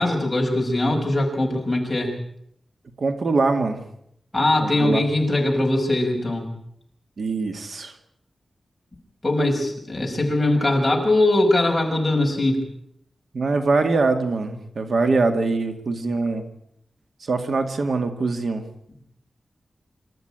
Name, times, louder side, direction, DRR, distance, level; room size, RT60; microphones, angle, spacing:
voice 1, 0.0-2.1 4.3-6.5 9.2-12.6, left 2 dB, 15° left, 0 dB, 6.2 m, -21 dB
voice 2, 3.0-3.8 4.6-5.1 7.2-7.9 13.3-16.4 17.2-18.6, right 3 dB, 65° right, 6 dB, 2.2 m, -23 dB
27.0 x 14.0 x 9.0 m, 0.74 s
wide cardioid pair, 135°, 0 cm